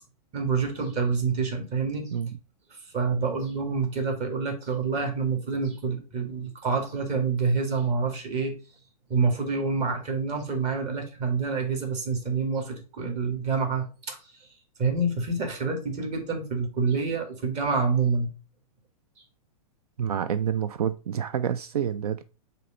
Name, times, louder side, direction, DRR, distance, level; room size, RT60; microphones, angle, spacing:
voice 1, 0.3-2.1 2.9-8.5 9.1-14.2 14.8-18.3, right 4 dB, 35° right, 1.9 m, -27 dB
voice 2, 20.0-22.2, right 8 dB, 80° right, 0.4 m, -28 dB
6.5 x 3.0 x 5.0 m
hypercardioid pair, 125°, 19 cm